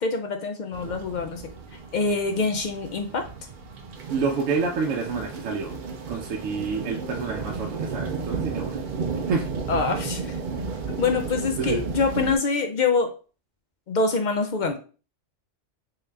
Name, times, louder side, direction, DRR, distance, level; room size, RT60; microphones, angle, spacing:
voice 1, 0.0-1.4 1.9-3.2 9.7-10.4 10.9-13.1 13.9-14.8, left 4 dB, 75° left, 5 dB, 0.4 m, -25 dB
sound 1, 0.7-12.4, right 4 dB, 60° right, 0.5 m, -33 dB
voice 2, 4.1-5.7 6.1-8.8 9.3-9.5 11.6-11.9, right 4 dB, 80° right, 1 dB, 1.0 m, -28 dB
3.7 x 2.7 x 3.3 m, 0.37 s
omnidirectional pair, 1.3 m